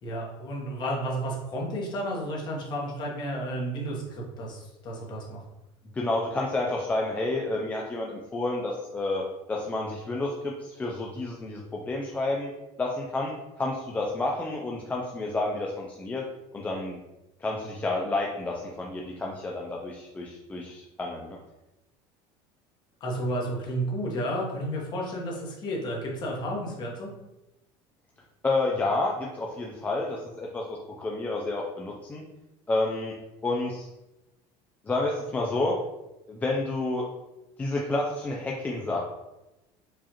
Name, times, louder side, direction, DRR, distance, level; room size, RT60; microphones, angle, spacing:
voice 1, 0.0-5.4 23.0-27.1, right 1 dB, 35° left, -2 dB, 1.0 m, -32 dB
voice 2, 5.9-9.2 9.5-12.5 12.8-13.3 13.6-16.2 16.5-17.0 17.4-21.4 28.4-32.2 32.7-33.1 33.4-33.9 34.9-35.8 36.3-37.1 37.6-39.0, left 2 dB, 15° left, -2 dB, 0.3 m, -30 dB
4.8 x 2.4 x 2.9 m, 0.97 s
cardioid pair, 160°, 13 cm